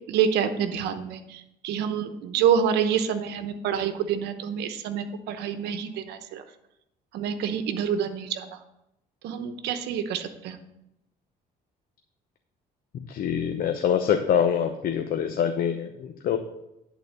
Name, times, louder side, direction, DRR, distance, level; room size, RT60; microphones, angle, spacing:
voice 1, 0.1-6.4 7.1-8.6 9.2-10.6, right 8 dB, 85° right, 9 dB, 0.9 m, -27 dB
voice 2, 13.1-16.4, left 8 dB, 60° left, 5 dB, 0.8 m, -25 dB
10.5 x 4.1 x 6.7 m, 0.85 s
cardioid pair, 110°, 17 cm